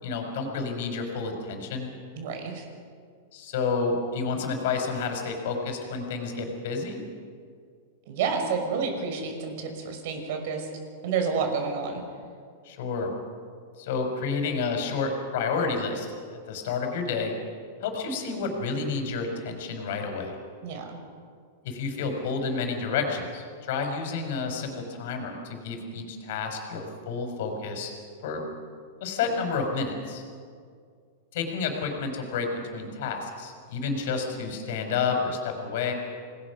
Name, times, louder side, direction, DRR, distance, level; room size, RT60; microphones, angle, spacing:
voice 1, 0.0-1.9 3.3-7.0 12.6-13.1 13.8-16.1 16.5-17.3 17.8-20.4 21.6-27.9 28.2-28.4 29.0-30.2 31.3-35.9, left 4 dB, 65° left, 4 dB, 5.2 m, -30 dB
voice 2, 2.2-2.7 8.1-10.7 11.0-12.0 20.6-21.0, right 5 dB, 60° right, 4 dB, 5.7 m, -29 dB
27.5 x 20.0 x 6.1 m, 2.1 s
supercardioid pair, 145°, 0 cm